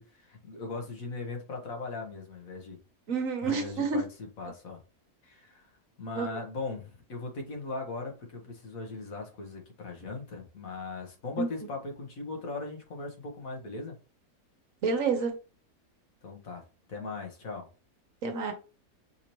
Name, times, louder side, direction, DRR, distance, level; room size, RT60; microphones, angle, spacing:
voice 1, 0.0-2.8 3.4-4.8 5.2-5.7 6.0-14.0 16.2-16.6 16.9-17.7, left 3 dB, 65° left, 1.6 m, -39 dB
voice 2, 3.1-4.0 6.2-6.3 11.4-11.5 14.8-15.3 18.2-18.5, right 4 dB, 65° right, 1.3 m, -28 dB
5.8 x 2.8 x 3.0 m
omnidirectional pair, 1.6 m